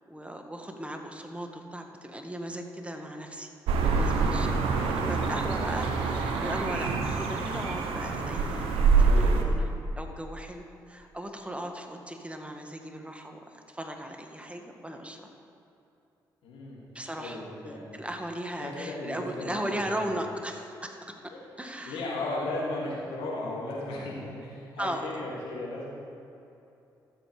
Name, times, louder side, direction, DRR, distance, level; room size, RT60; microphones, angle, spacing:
voice 1, 0.1-3.5 3.8-9.7 10.0-15.3 16.9-17.4 17.6-21.2 21.6-22.0 24.8-25.1, right 1 dB, 15° right, 4 dB, 1.7 m, -37 dB
sound 1, 3.7-9.4, right 4 dB, 75° right, 1.0 m, -25 dB
voice 2, 16.4-16.8 17.2-18.0 18.6-20.1 21.3-21.4 21.9-25.9, left 2 dB, 75° left, -5 dB, 2.8 m, -36 dB
13.5 x 7.9 x 5.0 m, 2.8 s
hypercardioid pair, 40°, 9 cm